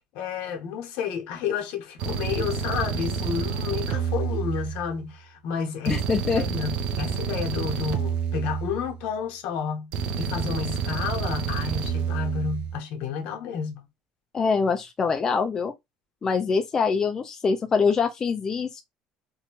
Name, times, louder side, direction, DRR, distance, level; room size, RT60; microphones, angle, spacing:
voice 1, 0.1-6.0 6.4-9.9 10.2-13.8, left 7 dB, 75° left, 0.9 m, -31 dB
sound 1, 2.0-5.1 5.9-9.1 9.9-12.8, right 7 dB, 60° right, 0.5 m, -29 dB
voice 2, 5.9-6.4 14.3-15.7 16.2-18.8, left 5 dB, 25° left, 0.3 m, -24 dB
2.6 x 2.2 x 2.8 m
cardioid pair, 150°, 2 cm